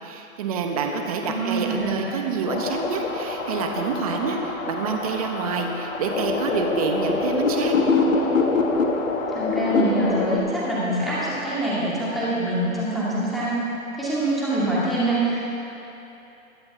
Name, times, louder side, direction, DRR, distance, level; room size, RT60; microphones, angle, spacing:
voice 1, 0.0-7.8, right 5 dB, 25° right, 3 dB, 0.9 m, -27 dB
voice 2, 1.2-2.1 9.3-13.5 13.9-15.5, right 1 dB, ahead, -10 dB, 2.2 m, -25 dB
sound 1, 2.5-10.4, left 3 dB, 65° left, 1.5 m, -25 dB
21.5 x 7.7 x 3.6 m, 2.9 s
hypercardioid pair, 155°, 43 cm